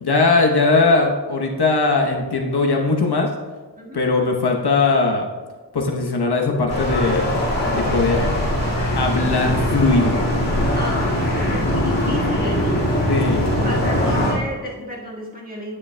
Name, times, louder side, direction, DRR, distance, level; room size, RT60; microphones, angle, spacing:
voice 1, 0.0-3.3 3.9-5.3 5.7-7.4 7.6-8.2 9.0-10.2 13.1-13.5, left 3 dB, 65° left, 1 dB, 0.9 m, -19 dB
sound 1, 6.7-14.3, left 1 dB, 40° left, 2.0 m, -21 dB
voice 2, 10.7-12.9 13.6-15.8, equal, 20° right, -4 dB, 1.7 m, -32 dB
9.8 x 7.0 x 2.2 m, 1.3 s
wide cardioid pair, 90°, 42 cm